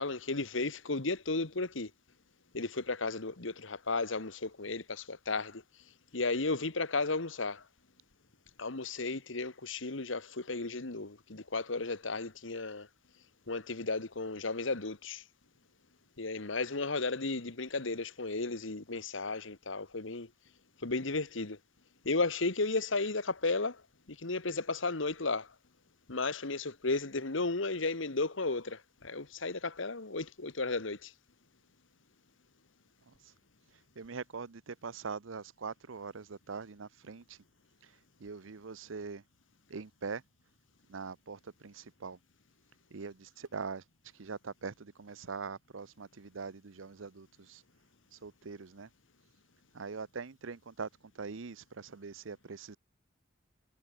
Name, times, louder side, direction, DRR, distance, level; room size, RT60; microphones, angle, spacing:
voice 1, 0.0-1.9 2.5-5.6 6.1-7.6 8.6-12.9 13.5-15.2 16.2-20.3 20.8-21.6 22.0-23.8 24.1-25.5 26.1-31.1, left 3 dB, 80° left, 1.7 m, -34 dB
voice 2, 34.0-37.4 37.8-37.9 38.2-39.2 39.7-40.2 40.9-42.2 42.9-43.8 44.1-47.6 48.1-48.9 49.7-50.9 51.1-52.8, right 5 dB, 90° right, 0.8 m, -42 dB
head